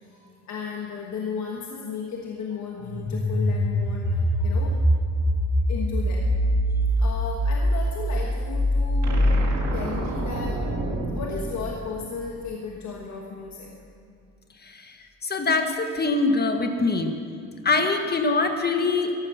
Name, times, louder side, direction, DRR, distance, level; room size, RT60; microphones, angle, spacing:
voice 1, 0.0-4.9 5.7-6.4 7.0-9.3 9.7-10.7 11.1-13.8, left 5 dB, 65° left, 0 dB, 1.5 m, -35 dB
sound 1, 2.8-11.5, equal, 10° left, 1.8 m, -24 dB
sound 2, 9.0-12.4, right 3 dB, 60° right, 2.6 m, -31 dB
voice 2, 15.2-17.1 17.6-19.1, left 3 dB, 35° left, 5 dB, 1.6 m, -23 dB
14.5 x 12.0 x 5.9 m, 2.5 s
cardioid pair, 90°, 30 cm